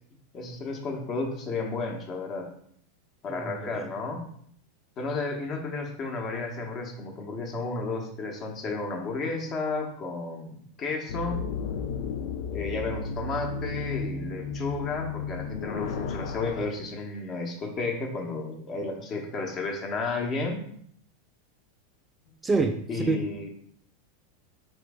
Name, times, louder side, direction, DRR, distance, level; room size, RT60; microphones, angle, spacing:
voice 1, 0.3-2.5 3.2-4.2 5.0-11.4 12.5-20.6 22.9-23.5, left 3 dB, 40° left, 2 dB, 1.0 m, -32 dB
voice 2, 3.3-3.9 22.4-23.2, right 4 dB, 15° right, 6 dB, 0.3 m, -28 dB
sound 1, 11.1-16.7, left 5 dB, 70° left, 0.4 m, -33 dB
4.0 x 3.2 x 3.5 m, 0.66 s
hypercardioid pair, 110°, 0 cm